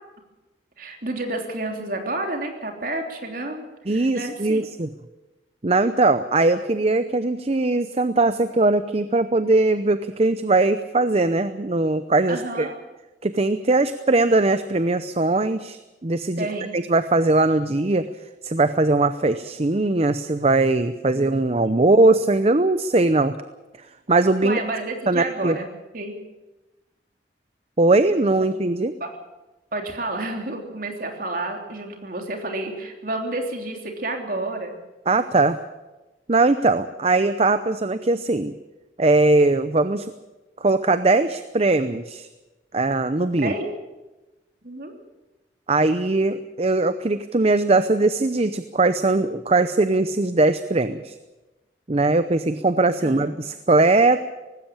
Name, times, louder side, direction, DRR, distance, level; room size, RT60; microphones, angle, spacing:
voice 1, 0.8-4.6 12.3-12.7 16.4-16.7 21.1-21.8 24.4-25.7 25.9-26.1 29.0-29.1 29.7-34.8 43.3-43.7 44.6-44.9 53.0-53.3, right 2 dB, 50° right, 3 dB, 3.3 m, -30 dB
voice 2, 3.9-4.9 5.6-12.7 13.2-16.5 16.7-18.1 18.4-23.4 24.1-24.6 25.1-25.6 27.8-28.9 35.1-35.6 36.3-38.5 39.0-40.1 40.6-42.3 42.7-43.5 45.7-51.1 51.9-54.3, right 2 dB, 35° right, 11 dB, 0.7 m, -20 dB
19.0 x 16.5 x 8.8 m, 1.1 s
head